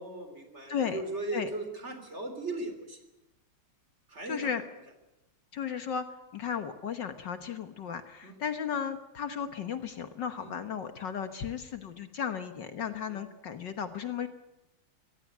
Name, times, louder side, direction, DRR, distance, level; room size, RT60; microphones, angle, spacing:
voice 1, 0.0-3.0 4.1-4.5 8.2-8.4 10.4-10.5 13.1-13.2, right 2 dB, 30° right, 7 dB, 3.7 m, -38 dB
voice 2, 0.7-1.0 1.3-1.5 4.3-4.6 5.5-6.1 6.3-14.3, left 7 dB, 60° left, 9 dB, 1.8 m, -35 dB
24.0 x 17.0 x 9.4 m, 0.94 s
omnidirectional pair, 2.3 m